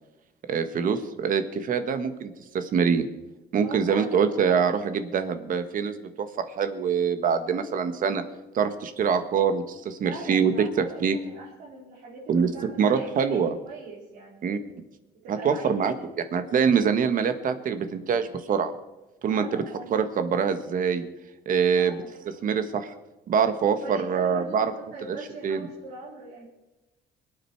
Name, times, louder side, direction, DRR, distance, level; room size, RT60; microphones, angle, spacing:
voice 1, 0.5-3.0 3.5-8.2 8.5-11.1 12.3-13.5 14.4-14.6 15.3-15.9 16.3-18.7 19.2-19.6 19.9-21.0 21.4-22.0 22.4-22.9 23.3-24.7 25.4-25.7, right 6 dB, 55° right, 10 dB, 1.5 m, -24 dB
voice 2, 3.6-4.2 10.0-14.6 15.2-15.9 19.3-19.9 21.7-22.1 23.8-26.4, right 3 dB, 85° right, -7 dB, 4.3 m, -41 dB
23.5 x 9.1 x 4.7 m, 1.0 s
cardioid pair, 110°, 17 cm